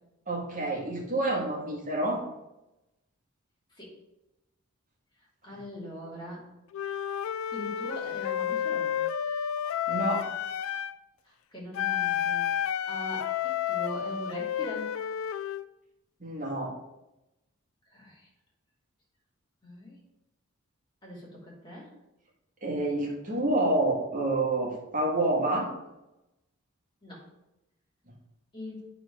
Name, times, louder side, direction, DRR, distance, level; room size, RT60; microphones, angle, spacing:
voice 1, 0.3-2.2 9.9-10.3 16.2-16.7 22.6-25.7, right 2 dB, 35° right, -3 dB, 1.7 m, -28 dB
voice 2, 5.4-6.5 7.5-9.0 11.5-14.9 17.9-18.3 19.6-20.0 21.0-21.9 27.0-27.2 28.5-28.8, equal, 20° left, -5 dB, 2.4 m, -41 dB
Wind instrument woodwind instrument, 6.7-11.0 11.7-15.6, left 9 dB, 70° left, 0.3 m, -31 dB
8.9 x 3.9 x 5.0 m, 0.94 s
head